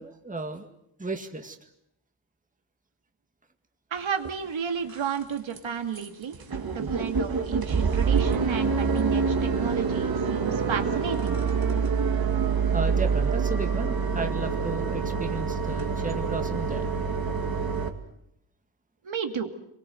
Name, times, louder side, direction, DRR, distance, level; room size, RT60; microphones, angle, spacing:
voice 1, 0.0-1.6 12.7-16.9, right 3 dB, 15° right, 5 dB, 2.1 m, -34 dB
voice 2, 3.9-6.3 6.6-11.4 19.0-19.5, right 7 dB, 75° right, 6 dB, 2.5 m, -32 dB
sound 1, 4.2-4.3 4.8-5.2 5.5-5.6 6.0-6.1 6.3-17.9, right 5 dB, 50° right, 2.5 m, -26 dB
28.0 x 23.0 x 7.9 m, 0.76 s
wide cardioid pair, 150°, 48 cm